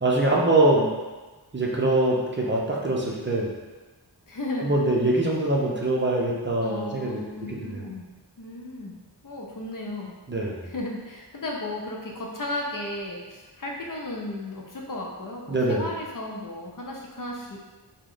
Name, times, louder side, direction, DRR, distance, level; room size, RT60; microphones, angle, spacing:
voice 1, 0.0-0.9 1.5-3.5 4.6-7.8 10.3-10.6 15.5-15.9, right 2 dB, 25° right, -3 dB, 0.6 m, -23 dB
voice 2, 4.3-4.7 6.6-8.0 8.4-8.9 9.2-10.1 10.6-17.6, left 1 dB, 50° left, -1 dB, 0.6 m, -34 dB
3.0 x 2.2 x 3.7 m, 1.3 s
wide cardioid pair, 55°, 43 cm